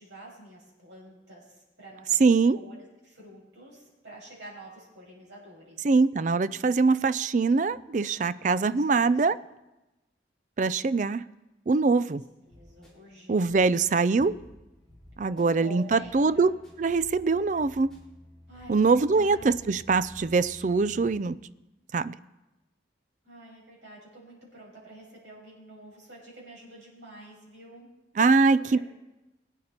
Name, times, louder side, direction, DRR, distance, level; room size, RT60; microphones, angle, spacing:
voice 1, 0.0-2.3 2.5-5.8 8.0-9.4 12.1-12.2 12.5-14.0 15.3-16.5 18.5-19.7 23.2-27.9 28.7-28.8, right 1 dB, 80° right, 6.2 m, -48 dB
voice 2, 2.2-2.6 5.8-9.4 10.6-11.2 11.7-12.2 13.3-14.4 15.2-16.5 16.8-18.0 18.7-21.4 21.9-22.1 28.2-28.8, right 4 dB, 40° right, 0.4 m, -23 dB
sound 1, 12.2-21.2, left 1 dB, 5° left, 3.5 m, -53 dB
22.0 x 9.1 x 4.4 m
head